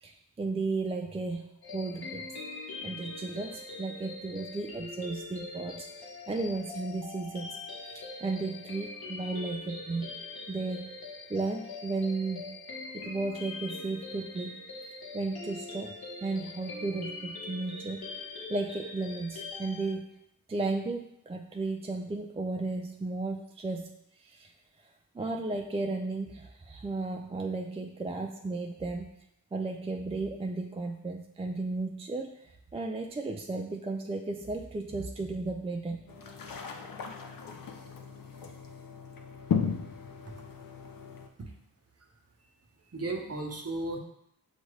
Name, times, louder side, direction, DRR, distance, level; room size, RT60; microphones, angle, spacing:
voice 1, 0.0-2.3 2.8-10.2 10.5-10.9 11.3-12.6 12.9-14.6 15.1-18.1 18.5-20.1 20.5-23.9 24.2-24.5 25.1-29.1 29.5-32.3 32.7-36.0, right 3 dB, 15° right, 3 dB, 0.3 m, -34 dB
sound 1, 1.6-19.9, left 3 dB, 85° left, 1.0 m, -43 dB
sound 2, 36.1-41.3, left 6 dB, 65° left, 0.6 m, -36 dB
voice 2, 42.8-44.0, right 2 dB, 40° right, 2 dB, 0.9 m, -35 dB
6.4 x 2.4 x 3.1 m, 0.77 s
cardioid pair, 55°, 36 cm